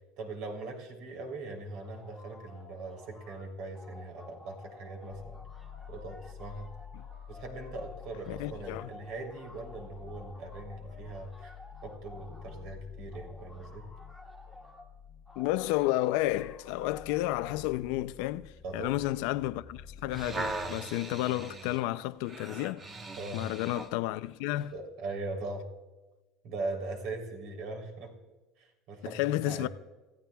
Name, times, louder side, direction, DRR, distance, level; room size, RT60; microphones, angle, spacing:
voice 1, 0.2-5.4 5.9-6.7 7.3-11.5 11.8-13.8 18.6-18.9 23.2-23.4 24.7-25.7 26.4-28.1 28.6-29.7, right 2 dB, 60° right, 3.4 m, -40 dB
sound 1, 1.8-3.5 3.7-12.6 13.1-14.9 15.3-17.6, left 2 dB, 5° right, 1.8 m, -53 dB
sound 2, 5.1-20.7, left 7 dB, 55° left, 0.8 m, -49 dB
voice 2, 8.3-8.9 15.4-22.9 23.3-24.7 29.0-29.7, left 16 dB, 70° left, 0.4 m, -31 dB
sound 3, 19.9-24.0 24.6-24.7, right 3 dB, 20° right, 1.1 m, -40 dB
28.0 x 15.5 x 2.3 m
cardioid pair, 155°, 0 cm